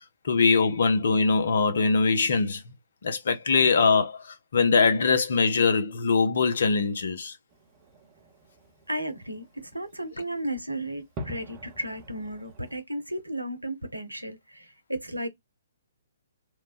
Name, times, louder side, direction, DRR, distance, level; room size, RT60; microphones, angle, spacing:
voice 1, 0.2-2.6 3.0-7.3, left 4 dB, 55° left, 0.6 m, -22 dB
Fireworks, 7.5-12.8, equal, 25° right, 0.8 m, -46 dB
voice 2, 8.9-15.3, right 1 dB, 85° right, 0.7 m, -34 dB
3.1 x 2.2 x 2.4 m
figure-of-eight pair, 125°, 0 cm